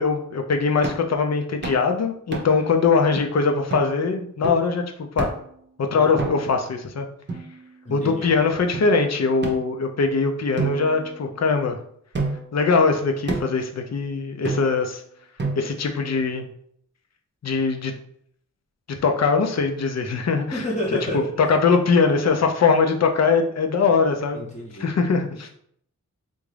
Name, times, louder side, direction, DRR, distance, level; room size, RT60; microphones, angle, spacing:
voice 1, 0.0-5.3 5.8-7.1 7.9-11.8 12.5-15.0 15.6-16.5 17.4-17.9 18.9-20.7 21.1-24.4 24.8-25.5, left 4 dB, 55° left, 5 dB, 0.6 m, -21 dB
sound 1, 0.8-1.1 1.6-1.9 2.3-2.7 3.1-3.2 3.7-3.9 4.4-4.7 5.2-5.5 6.2-6.6 7.3-8.0 8.7-8.9 9.4-10.1 10.6-11.6 12.1-12.6 13.3-13.6 14.4-14.9 15.4-15.9, right 3 dB, 35° right, 0.7 m, -30 dB
voice 2, 7.8-8.3 20.5-21.3 24.3-24.9, equal, 20° left, -4 dB, 0.8 m, -30 dB
3.5 x 2.6 x 3.2 m, 0.66 s
wide cardioid pair, 95°, 32 cm